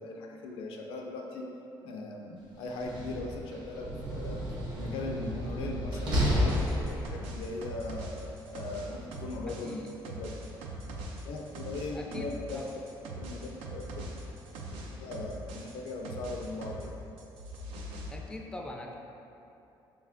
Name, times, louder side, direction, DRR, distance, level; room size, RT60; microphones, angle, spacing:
voice 1, 0.0-1.5 1.8-4.4 4.8-8.1 8.5-10.3 11.3-12.8 13.2-14.0 14.8-16.9, left 2 dB, 80° left, 1 dB, 0.4 m, -39 dB
Slam, 2.7-7.4, equal, 55° right, 0.9 m, -31 dB
sound 1, 6.1-16.9 17.2-18.1, right 1 dB, 85° right, 0.4 m, -42 dB
voice 2, 9.5-9.9 11.9-12.7 18.1-18.9, left 1 dB, 10° left, 1 dB, 0.3 m, -42 dB
4.0 x 3.2 x 2.5 m, 2.8 s
cardioid pair, 90°, 9 cm